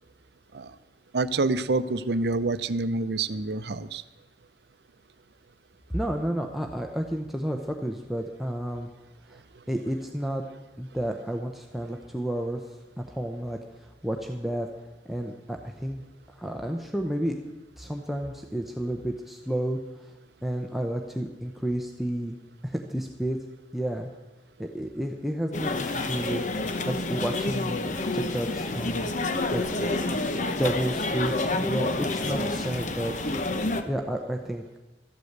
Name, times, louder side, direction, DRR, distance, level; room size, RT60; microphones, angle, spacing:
voice 1, 1.1-4.0, right 3 dB, 65° right, 13 dB, 0.7 m, -27 dB
voice 2, 5.9-8.9 9.3-9.4 9.7-10.4 10.8-12.6 13.0-14.7 15.1-16.0 16.3-17.4 17.8-20.1 20.4-22.4 22.6-23.4 23.7-24.1 24.6-26.4 26.9-29.1 29.5-29.6 30.1-30.3 30.6-33.3 33.9-34.6, right 1 dB, ahead, 2 dB, 0.7 m, -31 dB
sound 1, 25.5-33.8, left 2 dB, 45° left, 0.9 m, -29 dB
13.5 x 8.4 x 8.0 m, 1.2 s
head